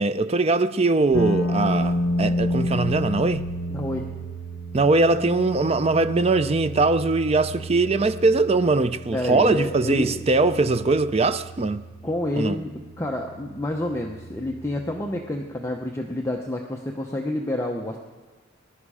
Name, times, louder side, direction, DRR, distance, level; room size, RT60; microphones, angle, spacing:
voice 1, 0.0-3.4 4.7-11.8 12.4-12.6, right 3 dB, 30° right, 0.5 m, -21 dB
sound 1, 1.1-15.2, equal, 80° left, 1.1 m, -31 dB
voice 2, 3.7-4.1 9.1-10.2 12.0-18.0, left 1 dB, 15° left, 0.8 m, -29 dB
23.0 x 11.5 x 4.9 m
head